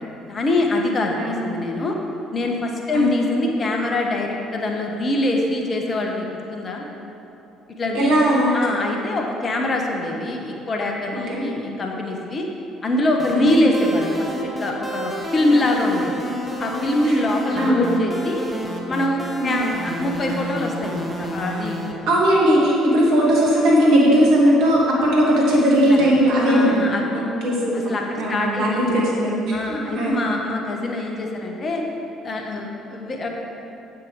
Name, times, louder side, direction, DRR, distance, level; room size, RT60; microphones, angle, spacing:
voice 1, 0.0-1.9 2.3-6.8 7.8-8.1 8.5-12.5 12.8-14.1 14.6-16.2 16.6-18.4 18.9-21.9 25.9-26.1 26.5-27.3 27.7-29.0 29.5-31.8 32.2-33.3, left 1 dB, 35° left, 1 dB, 1.4 m, -24 dB
voice 2, 7.9-8.5 11.3-11.5 13.3-13.6 17.6-17.9 19.4-19.5 22.1-26.8 27.1-27.9 28.2-29.4 29.7-30.1, equal, 65° right, -4 dB, 2.3 m, -18 dB
sound 1, 13.2-21.9, right 1 dB, 5° left, 1.6 m, -30 dB
8.9 x 7.7 x 4.9 m, 2.8 s
figure-of-eight pair, 50°, 0 cm